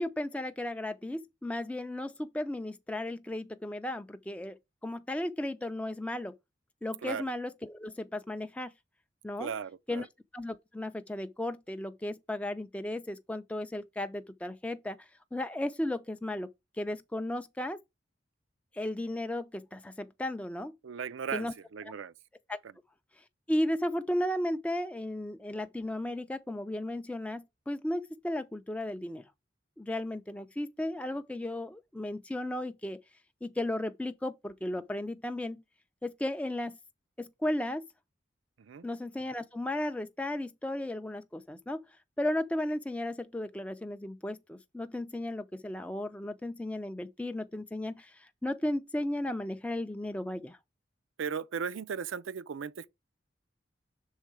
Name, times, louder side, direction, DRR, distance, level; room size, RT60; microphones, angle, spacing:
voice 1, 0.0-6.4 6.8-8.7 9.2-9.5 9.9-10.1 10.3-16.5 16.8-17.8 18.7-20.7 21.3-21.5 22.5-22.6 23.5-29.2 29.8-33.0 33.4-35.6 36.0-36.8 37.2-37.8 38.8-41.8 42.2-50.6, left 1 dB, 5° left, 0.3 m, -35 dB
voice 2, 9.4-10.1 20.8-22.1 38.6-38.9 51.2-52.9, right 6 dB, 85° right, 0.4 m, -37 dB
6.5 x 3.7 x 4.7 m
head